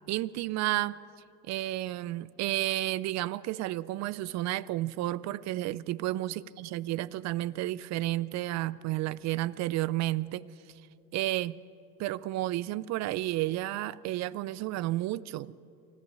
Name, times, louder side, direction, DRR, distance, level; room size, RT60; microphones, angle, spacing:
voice 1, 0.1-1.0 1.5-10.5 11.1-11.5 12.0-15.6, right 16 dB, 35° right, 0.4 m, -31 dB
24.5 x 14.0 x 8.5 m
hypercardioid pair, 90°, 50 cm